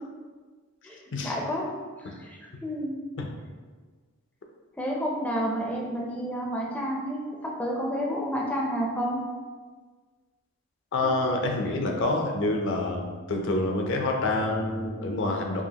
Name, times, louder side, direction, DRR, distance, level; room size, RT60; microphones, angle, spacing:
voice 1, 1.2-1.7 2.0-2.9 4.8-9.2, equal, 5° left, -2 dB, 0.4 m, -30 dB
voice 2, 10.9-15.6, left 2 dB, 60° left, 2 dB, 0.5 m, -27 dB
4.8 x 2.8 x 2.8 m, 1.5 s
head